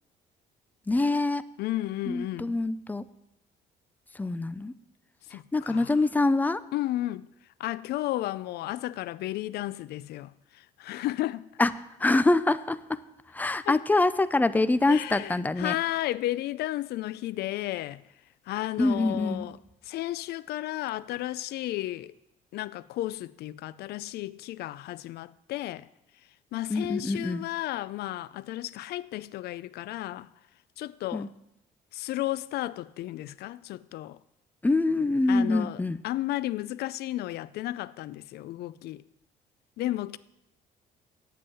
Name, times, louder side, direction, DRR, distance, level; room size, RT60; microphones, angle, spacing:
voice 1, 0.9-1.4 2.1-3.1 4.2-4.7 5.5-6.6 11.6-11.7 12.0-13.0 13.3-15.8 18.8-19.5 26.7-27.4 31.1-31.3 34.6-36.0, left 2 dB, 10° left, 0.5 m, -25 dB
voice 2, 1.6-2.6 5.3-6.0 6.7-7.3 7.6-11.5 13.5-13.8 14.9-18.0 18.5-19.6 19.8-22.2 22.5-25.9 26.5-30.3 30.8-31.3 31.9-34.2 35.3-39.0 39.8-40.2, left 15 dB, 70° left, 0.5 m, -33 dB
9.2 x 7.8 x 8.5 m
cardioid pair, 110°, 17 cm